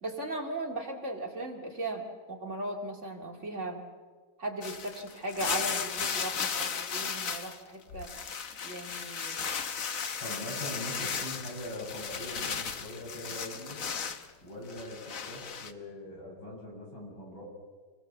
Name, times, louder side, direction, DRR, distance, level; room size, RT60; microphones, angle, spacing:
voice 1, 0.0-3.8 4.4-8.1 8.6-9.5, right 1 dB, 35° right, 1 dB, 2.8 m, -37 dB
sound 1, 4.6-7.6 7.9-14.3 14.7-15.7, left 6 dB, 50° left, 1.3 m, -35 dB
voice 2, 10.2-13.8 14.4-15.0 15.3-17.4, left 1 dB, 80° left, -2 dB, 8.2 m, -41 dB
27.5 x 21.0 x 7.3 m, 1.4 s
omnidirectional pair, 2.1 m